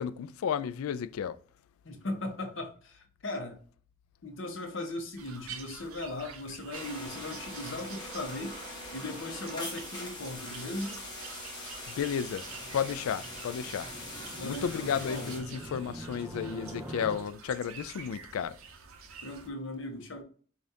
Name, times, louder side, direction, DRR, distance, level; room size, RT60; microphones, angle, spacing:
voice 1, 0.0-1.4 11.9-12.4 12.7-13.9 14.4-18.6, left 7 dB, 85° left, 0.3 m, -33 dB
voice 2, 1.8-3.6 4.2-8.6 8.9-11.0 14.4-15.3 19.2-20.2, left 2 dB, 65° left, 0.9 m, -38 dB
sound 1, 5.2-19.5, right 6 dB, 90° right, 0.6 m, -49 dB
sound 2, 6.7-15.4, left 1 dB, 20° left, 1.1 m, -42 dB
sound 3, 12.2-17.2, right 1 dB, 10° right, 0.3 m, -45 dB
5.1 x 2.4 x 2.7 m
head